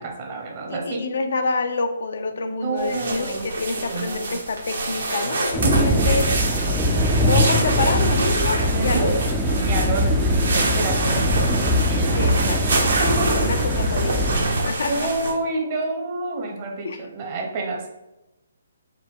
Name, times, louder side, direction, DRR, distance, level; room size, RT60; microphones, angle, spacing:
voice 1, 0.0-1.0 2.6-3.5 3.7-4.4 5.1-5.2 5.6-6.2 8.7-9.2 9.6-11.4 11.9-12.2 13.0-13.5 14.4-17.9, right 3 dB, 35° right, 1 dB, 0.9 m, -28 dB
voice 2, 0.7-6.3 7.3-9.3 12.1-12.9 13.3-14.3 14.6-15.1 16.8-17.1, left 3 dB, 65° left, 6 dB, 0.5 m, -27 dB
sound 1, 2.8-15.3, right 2 dB, 65° right, 1.0 m, -26 dB
sound 2, 5.5-14.4, equal, 5° right, 0.4 m, -22 dB
4.7 x 2.2 x 3.7 m, 0.94 s
hypercardioid pair, 145°, 0 cm